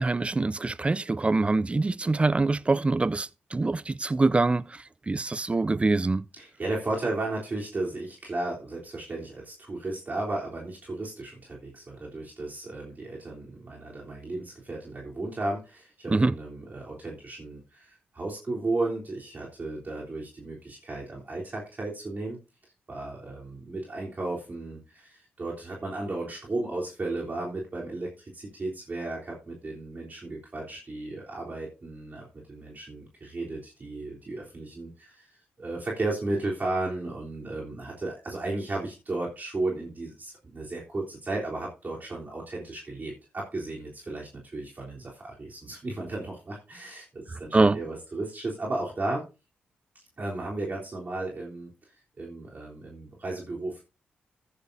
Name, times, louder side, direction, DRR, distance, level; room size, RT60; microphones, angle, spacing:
voice 1, 0.0-4.7 5.1-6.2 16.1-16.3 47.5-47.8, right 3 dB, 25° right, 0.5 m, -24 dB
voice 2, 6.3-22.4 22.9-49.2 50.2-51.7 52.2-53.8, right 2 dB, 45° right, 3.5 m, -34 dB
14.5 x 10.0 x 2.7 m
supercardioid pair, 45°, 4 cm